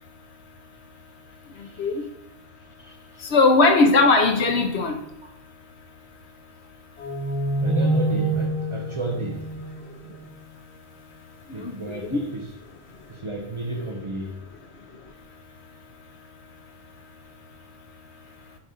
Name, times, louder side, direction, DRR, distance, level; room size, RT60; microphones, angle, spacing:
voice 1, 1.3-2.1 2.6-3.3 5.2-5.4 7.6-9.5 11.5-12.6 13.1-14.4, right 1 dB, 35° right, 0.6 m, -33 dB
voice 2, 3.3-5.0 11.6-11.7 12.1-12.2, left 3 dB, 80° left, 1.3 m, -18 dB
sound 1, 7.0-10.4, right 2 dB, 30° left, 1.3 m, -26 dB
7.2 x 4.2 x 5.0 m
omnidirectional pair, 1.1 m